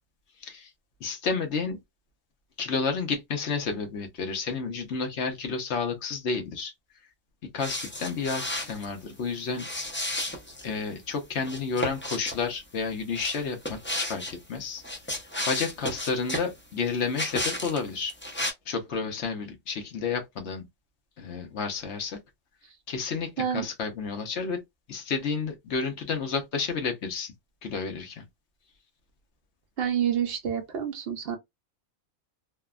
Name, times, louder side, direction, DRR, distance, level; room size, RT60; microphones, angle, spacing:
voice 1, 1.0-1.8 2.6-6.7 7.5-9.7 10.6-14.8 15.5-18.1 18.7-20.6 21.2-22.2 22.9-24.6 24.9-27.3 27.6-28.2, left 5 dB, 60° left, 1.0 m, -31 dB
sound 1, 7.6-8.8 9.5-10.7 11.4-12.4 13.1-14.3 14.8-16.5 17.1-17.8 18.1-18.5, left 1 dB, 15° left, 0.4 m, -32 dB
voice 2, 29.8-31.4, right 9 dB, 55° right, 0.7 m, -28 dB
3.3 x 2.2 x 2.4 m
omnidirectional pair, 1.4 m